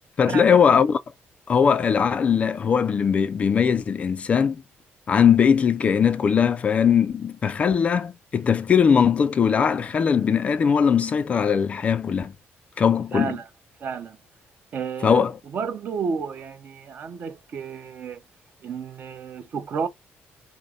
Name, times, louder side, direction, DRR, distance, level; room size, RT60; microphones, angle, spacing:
voice 1, 0.2-1.0 1.5-4.6 5.1-12.3 12.8-13.3 15.0-15.3, left 7 dB, 30° left, 0.4 m, -20 dB
voice 2, 13.1-13.5 13.8-14.2 14.7-15.3 15.5-18.2 18.6-19.9, right 6 dB, 45° right, 0.8 m, -31 dB
5.2 x 2.1 x 4.9 m
cardioid pair, 170°, 4 cm